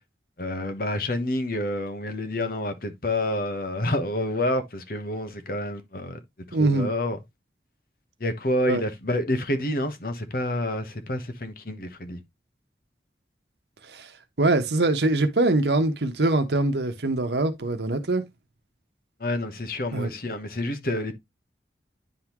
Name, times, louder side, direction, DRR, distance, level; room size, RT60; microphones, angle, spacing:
voice 1, 0.4-6.2 6.5-7.2 8.2-12.2 19.2-21.1, left 1 dB, 55° left, 1.1 m, -28 dB
voice 2, 6.5-6.9 8.6-8.8 13.9-14.1 14.4-18.2 19.9-20.1, right 2 dB, 70° right, 1.0 m, -23 dB
10.0 x 3.7 x 3.0 m
head